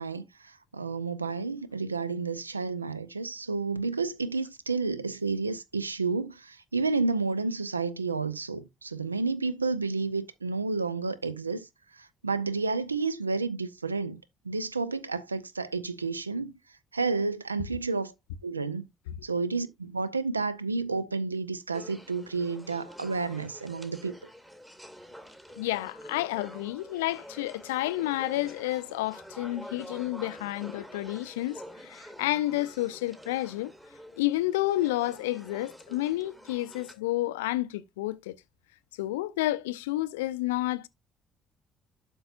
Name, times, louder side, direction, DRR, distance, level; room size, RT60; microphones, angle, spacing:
voice 1, 0.0-11.7 12.0-16.5 16.9-18.1 18.4-18.9 19.2-24.2, right 4 dB, 90° right, 0.4 m, -31 dB
sound 1, 21.7-36.9, equal, 10° right, 2.1 m, -48 dB
voice 2, 25.6-33.7 34.2-38.4 39.0-40.9, left 16 dB, 75° left, 0.4 m, -30 dB
12.0 x 5.4 x 2.5 m
figure-of-eight pair, 45°, 0 cm